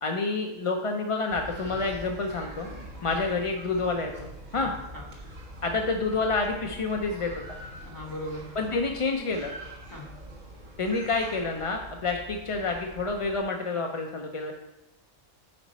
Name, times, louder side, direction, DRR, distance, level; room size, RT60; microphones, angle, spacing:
voice 1, 0.0-2.7 3.0-4.3 4.5-4.7 5.6-7.3 8.6-9.5 10.8-14.5, left 3 dB, 45° left, 2 dB, 0.4 m, -28 dB
sound 1, 1.3-13.4, equal, 70° right, 1.9 m, -44 dB
voice 2, 4.6-5.1 7.8-8.5 9.9-10.1, equal, 15° left, -3 dB, 1.6 m, -38 dB
8.6 x 5.1 x 4.1 m, 0.92 s
omnidirectional pair, 1.3 m